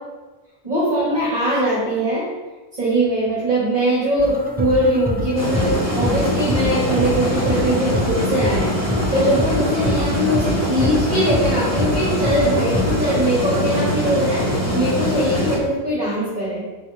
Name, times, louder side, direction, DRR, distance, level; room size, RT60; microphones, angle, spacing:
voice 1, 0.6-2.3 2.8-8.7 9.1-16.7, equal, 40° right, -9 dB, 1.8 m, -21 dB
sound 1, 4.2-13.2, equal, 15° right, 0.3 m, -27 dB
sound 2, 5.3-15.6, equal, 15° left, 1.3 m, -23 dB
4.5 x 4.5 x 5.7 m, 1.2 s
omnidirectional pair, 1.1 m